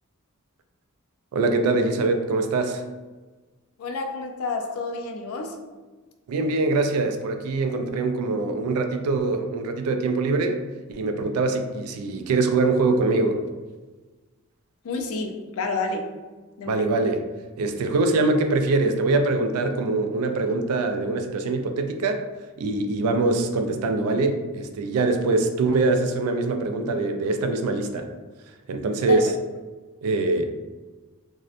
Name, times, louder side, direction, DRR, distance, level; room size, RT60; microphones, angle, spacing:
voice 1, 1.3-2.8 6.3-10.6 10.9-13.4 16.7-17.2 17.6-22.2 22.6-28.1 28.7-29.3 30.0-30.5, right 3 dB, 80° right, 7 dB, 0.3 m, -23 dB
voice 2, 3.8-5.6 14.8-16.1 16.6-16.9 29.0-29.2, left 3 dB, 70° left, 4 dB, 0.4 m, -29 dB
2.6 x 2.1 x 2.4 m, 1.3 s
head